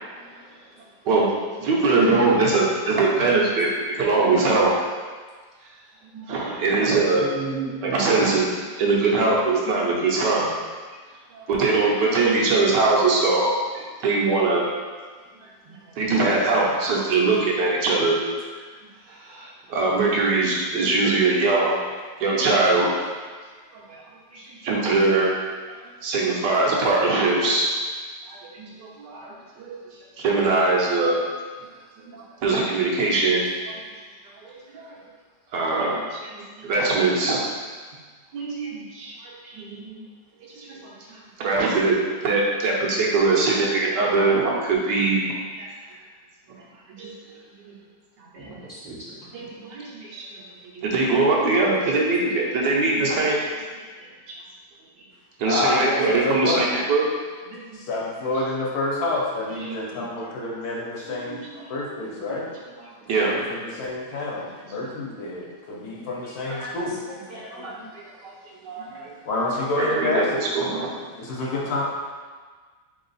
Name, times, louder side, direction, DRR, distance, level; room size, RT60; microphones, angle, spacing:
voice 1, 0.1-1.1 7.2-8.0 15.6-15.8 28.7-28.8 32.7-32.8 37.9-38.0 48.3-49.5 61.5-61.7 64.2-64.3 66.5-68.5 71.1-71.4, right 3 dB, 40° right, -8 dB, 0.6 m, -38 dB
voice 2, 1.6-3.7 4.0-4.7 6.1-7.2 7.8-8.5 8.8-10.6 11.3-14.6 15.4-15.5 16.0-18.1 18.5-18.6 19.2-21.8 22.2-22.9 23.7-24.0 24.3-25.3 26.0-27.7 28.3-29.7 30.2-31.1 32.0-33.7 34.4-34.9 35.5-37.4 38.3-40.0 40.4-42.0 42.2-45.7 46.9-47.4 48.3-48.6 49.3-50.3 50.6-53.6 54.0-54.3 55.4-57.1 57.4-57.6 59.5-59.8 61.1-61.6 62.3-62.4 63.1-63.6 67.6-67.7 68.2-68.3 68.6-69.1 69.8-70.9, right 3 dB, 85° right, -3 dB, 1.5 m, -22 dB
voice 3, 55.4-56.7 57.7-61.4 61.7-62.5 63.2-67.0 69.2-70.4 71.2-71.8, left 2 dB, 65° left, -3 dB, 1.2 m, -28 dB
3.7 x 3.5 x 4.0 m, 1.5 s
omnidirectional pair, 1.8 m